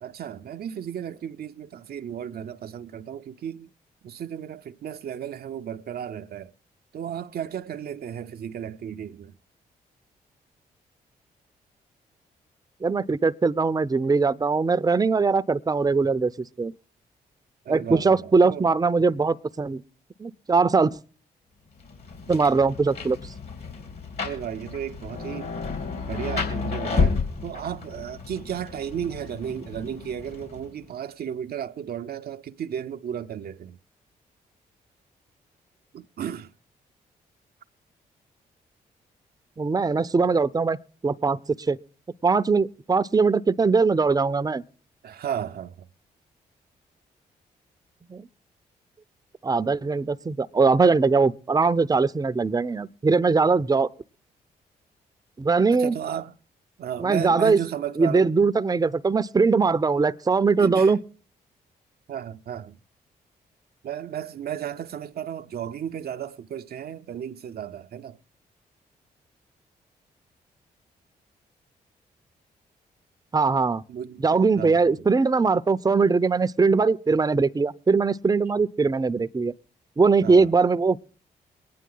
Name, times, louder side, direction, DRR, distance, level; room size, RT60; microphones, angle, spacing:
voice 1, 0.0-3.7 4.0-6.5 6.9-9.4 17.6-18.7 24.2-25.5 26.0-33.8 35.9-36.5 45.0-45.9 55.7-56.4 56.8-58.3 60.6-60.9 62.1-62.8 63.8-68.2 73.9-74.2 74.6-74.9 80.2-80.5, right 9 dB, 60° right, 0.6 m, -34 dB
voice 2, 12.8-16.7 17.7-19.8 20.2-21.0 22.3-23.3 39.6-40.8 41.0-41.8 42.2-44.6 48.1-48.3 49.4-53.9 55.4-56.0 57.0-57.6 58.0-61.0 73.3-73.8 74.2-79.5 80.0-81.0, right 4 dB, 20° right, 0.6 m, -21 dB
Rain, 21.8-30.8, left 4 dB, 65° left, 3.5 m, -31 dB
22.0 x 9.5 x 3.9 m
supercardioid pair, 45°, 18 cm